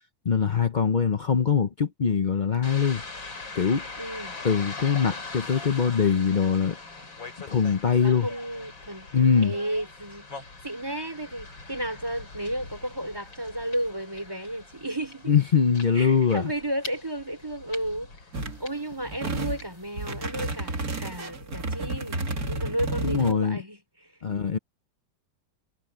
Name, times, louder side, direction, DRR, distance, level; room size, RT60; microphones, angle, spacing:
voice 1, 0.2-3.0 3.5-3.8 4.4-6.8 7.5-8.3 9.1-9.5 15.3-16.5 23.0-23.6 24.2-24.6, left 6 dB, 60° left, 0.4 m, -22 dB
sound 1, 2.6-21.2, left 3 dB, 85° left, 5.5 m, -43 dB
voice 2, 4.0-4.4 8.0-9.1 9.4-10.3 10.6-15.3 15.9-18.1 18.6-23.8, right 1 dB, 10° right, 3.6 m, -33 dB
sound 2, 18.3-18.6 19.0-19.6 20.0-23.3, right 2 dB, 50° right, 3.0 m, -31 dB
omnidirectional pair, 2.0 m